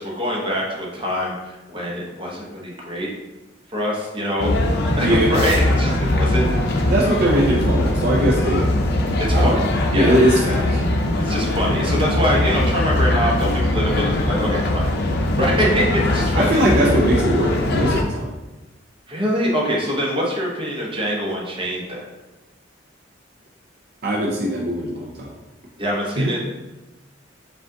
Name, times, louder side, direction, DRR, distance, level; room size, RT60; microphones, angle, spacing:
voice 1, 0.0-3.1 3.7-4.5 5.0-6.9 9.3-9.6 9.9-10.6 11.2-16.6 19.1-22.0 25.8-26.4, equal, 25° right, -3 dB, 0.9 m, -24 dB
sound 1, 4.4-18.0, left 1 dB, 55° left, 0.6 m, -21 dB
voice 2, 5.0-5.3 6.8-8.7 9.3-9.6 9.9-10.8 16.4-18.3 24.0-25.3 26.2-26.4, equal, 55° right, -2 dB, 0.6 m, -20 dB
5.0 x 2.4 x 3.8 m, 1.1 s
head